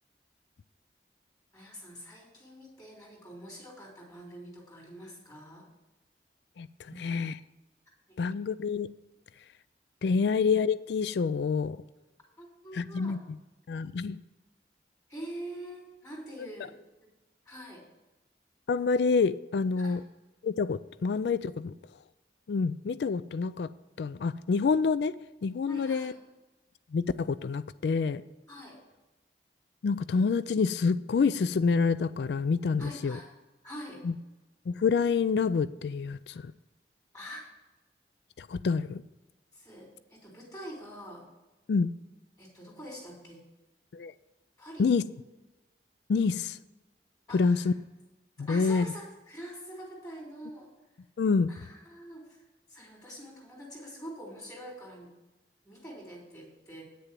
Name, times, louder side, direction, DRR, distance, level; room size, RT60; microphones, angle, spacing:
voice 1, 1.5-5.7 6.9-7.0 8.1-8.2 10.2-10.3 12.4-13.2 15.1-16.8 17.5-17.8 19.8-20.0 25.7-26.2 28.5-28.8 32.8-33.3 33.6-34.0 36.3-36.4 37.1-37.4 39.5-41.3 42.4-43.4 44.6-44.9 47.3-47.7 48.4-50.7 51.5-52.4 52.7-55.1 55.6-56.8, equal, 20° left, -3 dB, 3.5 m, -45 dB
voice 2, 6.6-7.3 8.2-8.9 10.0-11.8 12.7-13.2 13.7-14.2 18.7-20.0 20.4-21.7 22.5-23.7 24.0-26.1 26.9-28.2 29.8-33.2 34.0-34.1 34.7-36.5 38.4-39.0 41.7-41.9 43.9-44.1 44.8-45.0 46.1-46.6 47.3-47.7 48.4-48.9 51.2-51.5, left 5 dB, 75° left, 16 dB, 0.4 m, -27 dB
9.2 x 6.8 x 7.4 m, 1.1 s
head